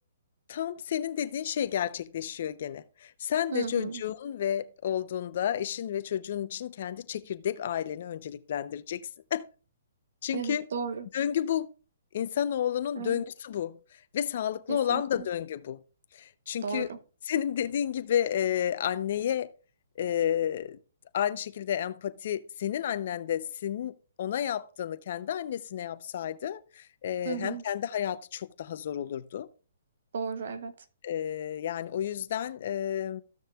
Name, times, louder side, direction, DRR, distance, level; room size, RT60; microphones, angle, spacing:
voice 1, 0.5-9.0 9.3-9.4 10.2-10.6 11.1-11.7 12.1-13.8 14.1-15.8 16.1-16.9 17.3-19.5 20.0-20.8 21.1-29.5 31.0-33.2, left 10 dB, 50° left, 0.7 m, -31 dB
voice 2, 3.5-4.0 10.3-11.1 13.0-13.2 14.7-15.3 16.6-17.0 27.2-27.6 30.1-30.7, right 6 dB, 65° right, 0.9 m, -34 dB
14.5 x 6.5 x 2.4 m
hypercardioid pair, 155°, 0 cm